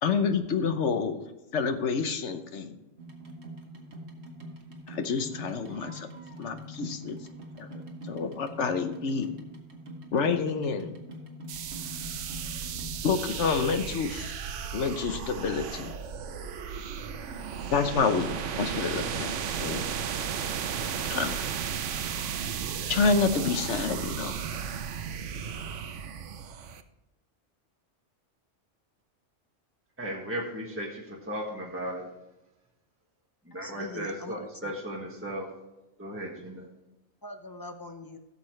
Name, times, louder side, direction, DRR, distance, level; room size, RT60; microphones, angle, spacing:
voice 1, 0.0-1.2 1.5-2.8 4.9-6.1 6.4-7.2 7.6-7.7 8.1-9.3 10.1-11.0 13.0-14.3 14.7-15.9 17.7-18.3 18.5-19.3 19.6-19.8 21.1-21.4 22.9-24.3, left 5 dB, 75° left, 8 dB, 1.2 m, -28 dB
sound 1, 3.0-13.3 14.1-16.2 16.5-17.5 18.0-18.1 18.3-18.4 18.6-18.7 19.1-19.2 19.4-19.5, equal, 65° right, 1.5 m, -44 dB
sound 2, 11.5-26.8, right 7 dB, 85° right, 1.1 m, -34 dB
voice 2, 30.0-32.1 33.4-35.5 36.0-36.7, equal, 10° right, -3 dB, 1.6 m, -36 dB
voice 3, 33.6-34.7 37.2-38.2, left 2 dB, 25° left, 6 dB, 0.6 m, -42 dB
16.0 x 6.8 x 3.2 m, 0.98 s
omnidirectional pair, 1.2 m